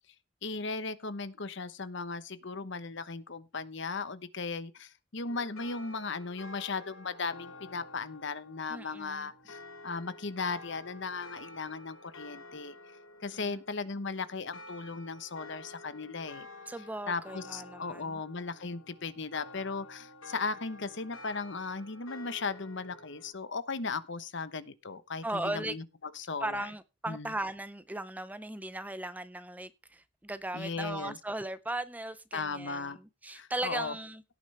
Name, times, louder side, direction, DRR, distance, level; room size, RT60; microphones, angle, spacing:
voice 1, 0.4-12.8 13.2-16.5 17.1-25.8 26.1-26.7 27.1-27.3 30.5-31.2 32.3-33.0 33.3-33.9, left 4 dB, 60° left, 1.0 m, -37 dB
sound 1, 5.3-23.3, left 2 dB, 80° left, 2.3 m, -50 dB
voice 2, 8.7-9.3 13.3-13.6 16.7-18.2 25.2-25.7 26.4-34.2, right 1 dB, 10° right, 0.5 m, -37 dB
17.0 x 9.1 x 3.4 m
head